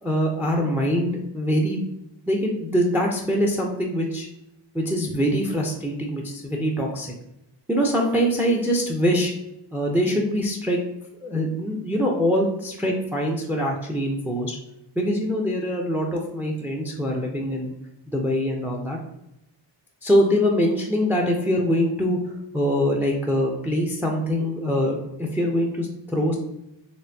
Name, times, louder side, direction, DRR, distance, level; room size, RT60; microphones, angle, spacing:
voice 1, 0.0-1.8 2.3-4.3 4.7-7.1 7.7-9.3 9.7-10.8 11.2-14.6 15.0-17.7 18.1-19.0 20.0-26.4, equal, 5° right, 1 dB, 0.4 m, -23 dB
4.3 x 3.2 x 2.6 m, 0.85 s
wide cardioid pair, 140°, 43 cm